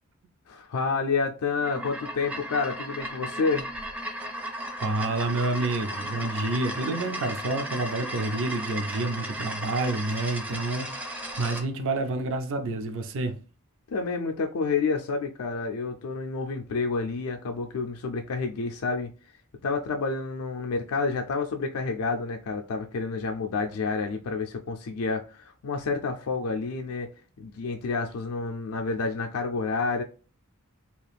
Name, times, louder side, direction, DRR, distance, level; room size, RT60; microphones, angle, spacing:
voice 1, 0.5-3.7 13.9-19.1 19.6-27.1 27.4-30.0, left 4 dB, 70° left, 0.4 m, -29 dB
sound 1, 1.5-11.7, right 1 dB, 5° right, 0.4 m, -35 dB
voice 2, 4.8-13.4, right 2 dB, 60° right, 0.5 m, -29 dB
2.9 x 2.4 x 3.3 m
head